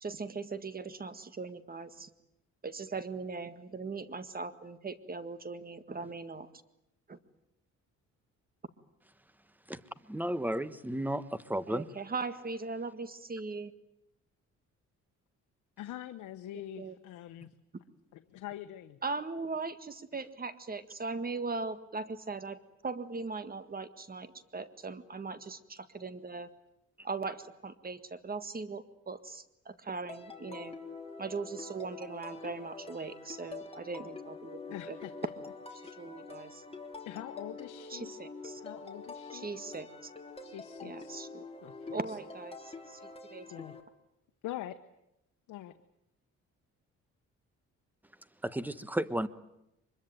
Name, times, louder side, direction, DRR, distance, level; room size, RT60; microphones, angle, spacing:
voice 1, 0.0-2.1 2.6-6.5 7.1-7.2 11.7-13.7 16.8-17.0 19.0-26.5 27.0-30.7 31.2-34.6 34.9-35.0 35.9-36.6 37.9-38.6 39.3-40.1 40.8-41.4 41.9-43.7, right 4 dB, 30° right, 1.8 m, -39 dB
voice 2, 10.1-11.9 48.4-49.3, right 1 dB, 5° right, 1.3 m, -33 dB
voice 3, 15.8-17.5 18.1-19.0 34.7-35.1 35.8-35.9 37.0-38.1 38.6-39.5 40.4-41.1 41.6-42.0 43.5-43.8 44.4-44.8 45.5-45.8, left 13 dB, 85° left, 1.1 m, -44 dB
sound 1, 30.1-43.8, left 4 dB, 20° left, 3.2 m, -46 dB
24.0 x 22.0 x 9.1 m
cardioid pair, 90°, 30 cm